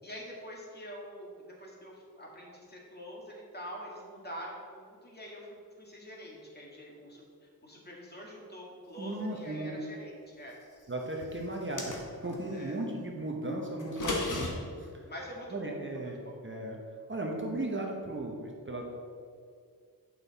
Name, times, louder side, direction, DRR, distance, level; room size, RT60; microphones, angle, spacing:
voice 1, 0.0-5.5 5.8-10.6 12.5-12.8 14.4-14.7 15.0-16.4, equal, 25° left, -3 dB, 2.1 m, -45 dB
voice 2, 9.0-9.7 10.9-14.5 14.8-15.1 15.5-16.8 17.1-18.9, right 1 dB, 35° right, 0 dB, 1.0 m, -36 dB
sound 1, 11.5-12.4 13.8-14.5, left 2 dB, 55° left, 1.5 m, -34 dB
8.8 x 5.6 x 4.1 m, 2.2 s
wide cardioid pair, 80°, 36 cm